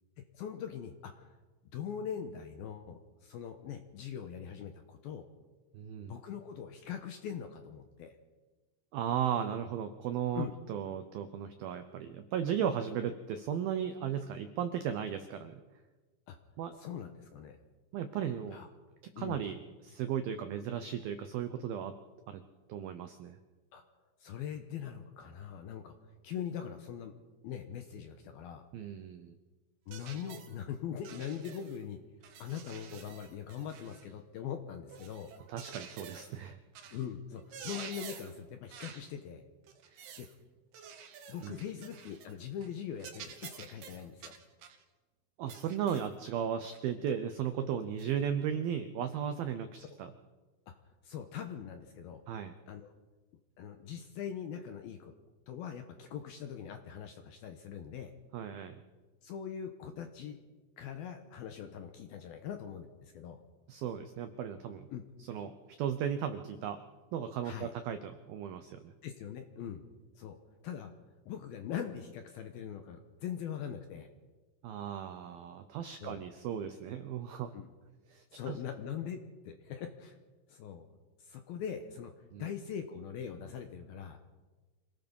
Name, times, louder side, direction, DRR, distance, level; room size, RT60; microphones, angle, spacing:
voice 1, 0.3-1.4 1.7-5.3 6.1-8.2 10.3-10.5 16.3-16.4 16.8-17.6 18.5-18.7 19.2-19.5 23.7-23.8 24.2-26.0 26.2-27.1 27.4-28.7 29.9-32.0 32.4-35.3 36.9-39.4 40.2-40.3 41.3-44.3 50.8-52.2 52.7-52.9 53.6-55.1 55.5-58.1 59.2-60.4 60.8-63.4 64.9-65.0 67.4-67.7 69.0-69.8 70.2-70.4 70.6-70.9 71.3-74.1 76.0-76.2 77.5-77.7 78.3-80.2 80.5-80.9 81.2-84.2, left 8 dB, 75° left, 6 dB, 2.3 m, -42 dB
voice 2, 5.7-6.1 8.9-15.6 16.6-16.7 17.9-18.6 19.2-21.9 22.3-22.4 22.7-23.4 28.7-29.3 35.5-36.6 39.9-40.0 41.4-41.5 45.4-50.1 52.3-52.5 58.3-58.8 63.7-64.9 65.3-65.5 65.8-66.8 67.1-68.9 74.6-77.5 78.1-78.6 82.3-82.5, right 8 dB, 90° right, 9 dB, 2.1 m, -36 dB
sound 1, 29.9-30.6 31.0-31.8 32.2-34.1 34.9-36.4 36.8-37.1 37.4-38.4 38.7-39.1 39.7-40.3 40.7-42.3 42.6-42.8 43.0-44.8 45.5-46.2 46.7-46.9 48.0-48.1, right 7 dB, 65° right, 3.2 m, -49 dB
26.5 x 18.0 x 5.4 m, 1.3 s
omnidirectional pair, 5.6 m